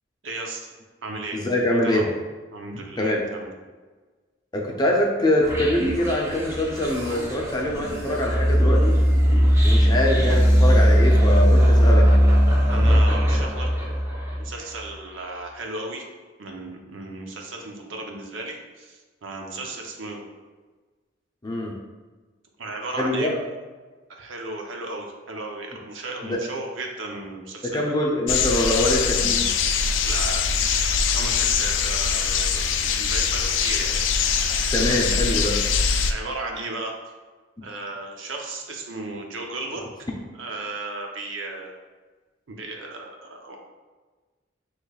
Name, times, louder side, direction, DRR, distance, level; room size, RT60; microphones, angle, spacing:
voice 1, 0.2-0.7 1.0-1.4 1.7-2.1 2.5-3.5 12.7-13.7 14.4-16.0 16.4-20.2 22.6-23.3 24.1-27.9 30.0-30.4 30.8-34.0 36.1-37.0 37.6-40.1 40.4-41.7 42.5-43.6, right 2 dB, 85° right, 1 dB, 0.7 m, -35 dB
voice 2, 1.3-2.1 3.0-3.3 4.5-9.0 9.6-12.1 21.4-21.7 23.0-23.4 26.2-26.4 27.6-29.4 34.7-35.6, left 1 dB, 20° left, -1 dB, 0.6 m, -24 dB
sound 1, 5.4-14.6, equal, 15° right, 0.8 m, -19 dB
sound 2, 28.3-36.1, left 6 dB, 70° left, 0.4 m, -23 dB
6.4 x 3.1 x 2.3 m, 1.3 s
head